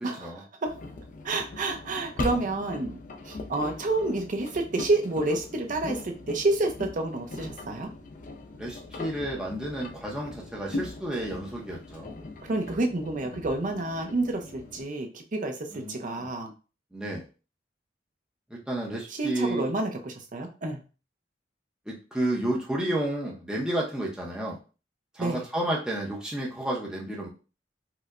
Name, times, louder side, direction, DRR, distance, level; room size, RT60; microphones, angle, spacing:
voice 1, 0.0-0.8 1.2-3.0 3.2-7.9 12.4-16.5 19.2-20.8 25.2-25.4, right 2 dB, 45° right, 4 dB, 0.6 m, -29 dB
Engine, 0.6-14.8, left 2 dB, 50° left, 0.5 m, -40 dB
voice 2, 8.6-12.1 15.7-16.3 16.9-17.2 18.5-19.7 21.9-24.6 25.1-27.3, right 1 dB, 5° right, -3 dB, 0.7 m, -31 dB
4.5 x 2.1 x 2.4 m, 0.34 s
head